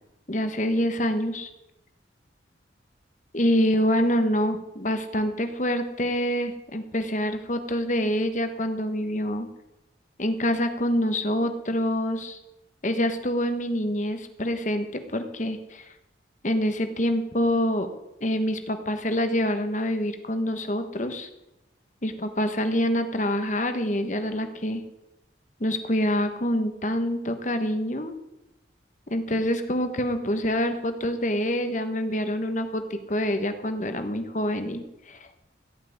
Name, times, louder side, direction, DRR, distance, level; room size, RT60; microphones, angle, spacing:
voice 1, 0.3-1.5 3.3-9.5 10.2-12.4 12.8-15.8 16.4-17.9 18.2-21.3 22.0-24.8 25.6-28.1 29.1-35.3, equal, 40° left, 8 dB, 1.4 m, -26 dB
16.5 x 6.1 x 9.4 m, 0.93 s
head